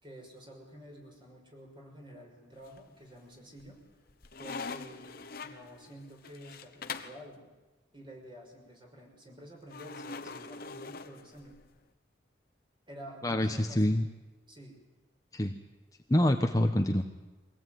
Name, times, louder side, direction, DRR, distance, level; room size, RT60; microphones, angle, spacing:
voice 1, 0.0-3.8 4.4-7.5 7.9-11.6 12.9-14.0 14.5-14.8, equal, 25° right, 1 dB, 5.9 m, -50 dB
sound 1, 2.6-3.2 3.6-7.3 9.7-11.8, left 4 dB, 50° left, 1.2 m, -43 dB
voice 2, 13.2-14.1 15.3-15.5 16.1-17.0, left 1 dB, 20° left, 4 dB, 1.1 m, -26 dB
24.0 x 18.0 x 9.4 m, 1.2 s
head